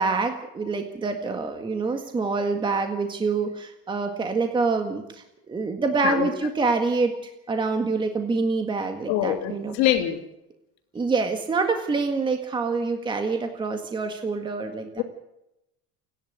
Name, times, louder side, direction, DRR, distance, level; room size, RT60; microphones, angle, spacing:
voice 1, 0.0-9.8 10.9-15.0, right 4 dB, 15° right, 1.8 m, -26 dB
voice 2, 9.1-10.2 15.0-15.1, left 12 dB, 60° left, 3.1 m, -24 dB
29.5 x 11.0 x 8.1 m
cardioid pair, 160°, 32 cm